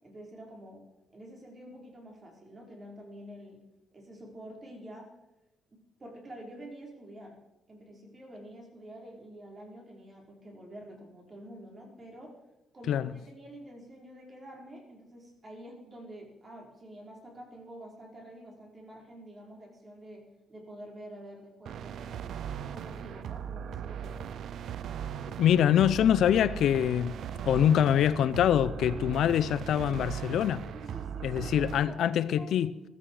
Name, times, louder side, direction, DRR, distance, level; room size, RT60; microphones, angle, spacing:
voice 1, 0.0-0.8 1.1-3.6 3.9-5.1 5.7-7.4 7.7-12.4 12.7-22.3 22.7-24.4 28.9-29.3 30.7-32.5, right 1 dB, 30° right, 4.9 m, -48 dB
sound 1, 21.7-31.8, right 8 dB, 70° right, 0.6 m, -38 dB
voice 2, 25.4-27.1 27.4-30.6 31.2-32.7, left 10 dB, 75° left, 0.5 m, -24 dB
15.0 x 14.0 x 4.9 m
cardioid pair, 90°, 0 cm